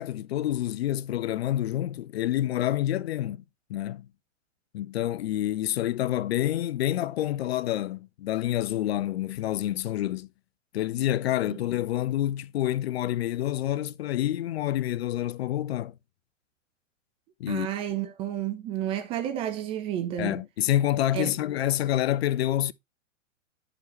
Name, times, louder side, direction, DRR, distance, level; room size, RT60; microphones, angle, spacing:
voice 1, 0.0-3.4 3.7-4.1 4.7-10.3 10.7-15.9 17.4-17.7 20.2-22.7, left 13 dB, 55° left, 0.5 m, -28 dB
voice 2, 17.5-20.4 21.1-21.3, right 11 dB, 15° right, 0.4 m, -31 dB
10.5 x 4.9 x 3.1 m
figure-of-eight pair, 110°, 38 cm